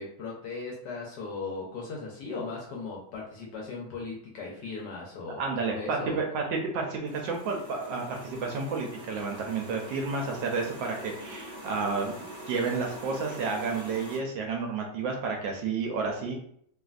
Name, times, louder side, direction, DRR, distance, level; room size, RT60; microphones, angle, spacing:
voice 1, 0.0-6.2, left 4 dB, 70° left, -2 dB, 1.1 m, -38 dB
voice 2, 5.4-12.2 12.5-16.3, right 4 dB, 75° right, 1 dB, 1.2 m, -31 dB
sound 1, 7.0-14.2, right 1 dB, 35° right, 1.1 m, -44 dB
3.2 x 2.5 x 2.4 m, 0.64 s
omnidirectional pair, 2.2 m